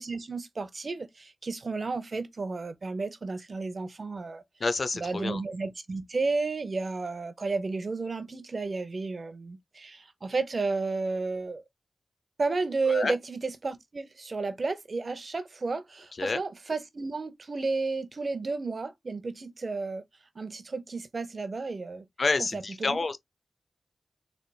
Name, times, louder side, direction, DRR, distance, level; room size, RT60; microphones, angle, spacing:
voice 1, 0.0-4.4 4.9-11.6 12.4-20.0 20.4-22.1 22.5-23.1, right 3 dB, 50° right, 0.7 m, -32 dB
voice 2, 4.6-5.4 12.9-13.2 16.2-16.4 22.2-23.2, left 3 dB, 55° left, 0.5 m, -28 dB
4.0 x 3.3 x 2.2 m
wide cardioid pair, 75°, 0 cm